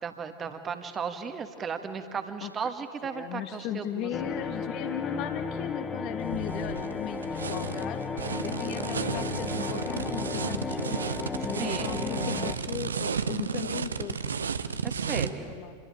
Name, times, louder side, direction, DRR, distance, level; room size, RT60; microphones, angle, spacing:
voice 1, 0.0-4.1 11.4-11.9 14.8-15.5, right 6 dB, 25° right, 8 dB, 1.8 m, -35 dB
voice 2, 3.1-8.0 8.4-11.0 11.5-14.2 15.2-15.7, left 10 dB, 40° left, 9 dB, 1.6 m, -37 dB
sound 1, 4.1-12.5, left 5 dB, 20° left, 1.5 m, -34 dB
sound 2, 6.2-15.3, right 6 dB, 70° right, 0.9 m, -33 dB
27.5 x 23.0 x 9.1 m, 2.1 s
figure-of-eight pair, 90°, 0 cm